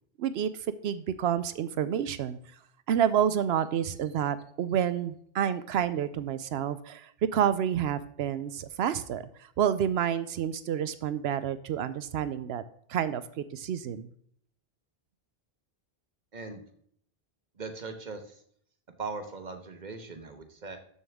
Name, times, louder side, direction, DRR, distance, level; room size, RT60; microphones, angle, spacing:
voice 1, 0.2-0.5 0.8-2.4 2.9-9.3 9.6-12.6 12.9-14.1, right 9 dB, 85° right, 14 dB, 0.8 m, -29 dB
voice 2, 17.6-18.4 19.0-20.8, right 4 dB, 45° right, 7 dB, 1.3 m, -39 dB
13.0 x 7.2 x 3.5 m, 0.64 s
omnidirectional pair, 1.0 m